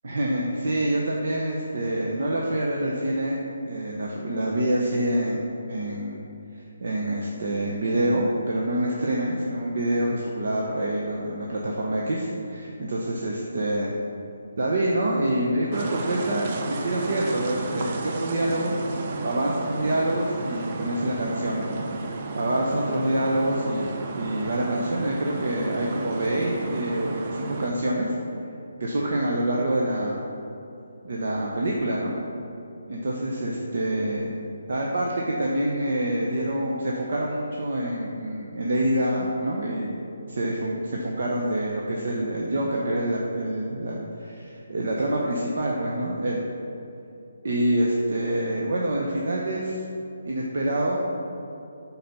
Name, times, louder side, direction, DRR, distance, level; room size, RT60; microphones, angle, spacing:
voice 1, 0.0-5.4 5.7-6.3 6.5-13.9 14.6-18.8 19.2-21.9 22.2-28.1 28.8-30.2 31.0-32.1 32.9-34.3 34.7-40.0 40.3-46.5 47.4-49.8 50.2-51.0, right 1 dB, 60° right, -2 dB, 0.9 m, -26 dB
sound 1, 15.7-27.7, right 3 dB, 35° right, 0.6 m, -33 dB
8.4 x 4.1 x 5.5 m, 2.8 s
hypercardioid pair, 165°, 0 cm